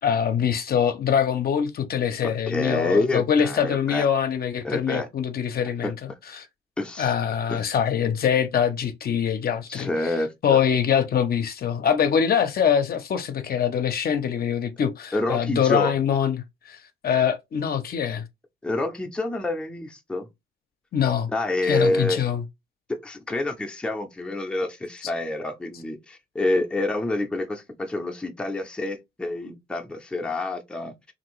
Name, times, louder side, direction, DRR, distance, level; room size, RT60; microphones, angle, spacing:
voice 1, 0.0-6.0 6.3-6.5 7.0-10.1 10.4-18.2 20.9-21.3 21.6-22.4, left 8 dB, 50° left, 0.5 m, -24 dB
voice 2, 2.2-4.1 4.6-5.1 5.8-5.9 6.8-7.1 7.5-7.6 9.7-10.6 15.1-15.9 18.6-20.3 21.3-22.2 22.9-31.1, left 2 dB, 5° left, 0.5 m, -27 dB
2.9 x 2.6 x 3.0 m
cardioid pair, 90°, 20 cm